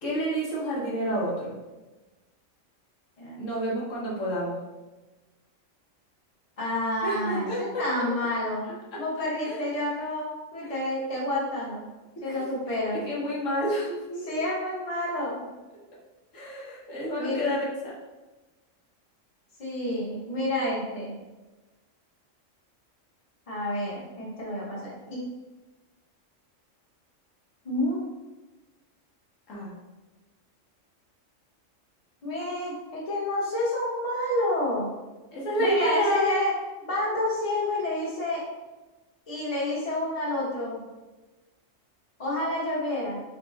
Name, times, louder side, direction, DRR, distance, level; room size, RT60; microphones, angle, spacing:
voice 1, 0.0-1.5 3.4-4.6 7.0-8.1 8.9-9.0 9.4-9.6 10.6-10.7 12.2-12.5 12.9-14.4 16.3-17.9 29.5-29.7 35.3-36.3, equal, 75° left, -5 dB, 1.4 m, -29 dB
voice 2, 6.6-8.6 8.9-11.8 12.2-13.0 14.2-15.5 17.1-17.5 19.6-21.1 23.5-25.2 27.6-28.0 32.2-34.9 35.6-36.5 36.8-38.4 39.3-40.8 42.2-43.2, left 1 dB, 30° left, -6 dB, 1.2 m, -29 dB
4.9 x 2.3 x 3.9 m, 1.1 s
omnidirectional pair, 1.3 m